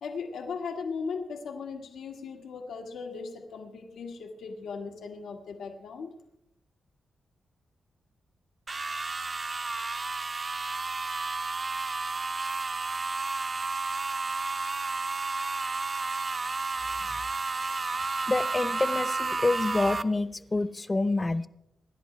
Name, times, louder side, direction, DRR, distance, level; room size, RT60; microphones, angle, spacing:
voice 1, 0.0-6.1, left 5 dB, 90° left, 3 dB, 1.7 m, -37 dB
sound 1, 8.7-20.0, right 3 dB, 30° right, 0.6 m, -31 dB
voice 2, 18.3-21.5, left 2 dB, 20° left, 13 dB, 0.7 m, -27 dB
26.5 x 11.5 x 3.3 m, 0.85 s
wide cardioid pair, 140°, 0 cm